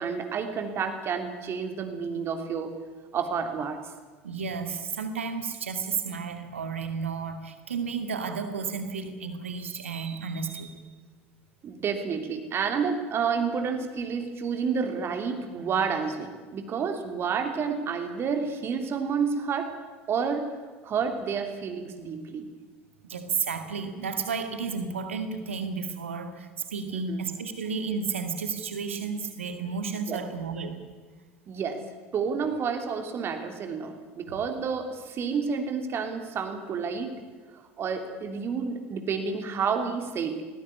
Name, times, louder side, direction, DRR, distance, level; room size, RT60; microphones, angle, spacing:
voice 1, 0.0-2.7 3.1-3.8 11.6-19.7 20.1-20.5 20.8-22.5 26.9-27.2 30.1-30.2 31.5-31.8 32.1-37.1 37.5-40.4, right 6 dB, 35° right, 6 dB, 3.1 m, -30 dB
voice 2, 4.2-10.8 23.1-30.8, right 5 dB, 75° right, 8 dB, 2.2 m, -32 dB
18.5 x 18.5 x 9.7 m, 1.4 s
figure-of-eight pair, 70°, 7 cm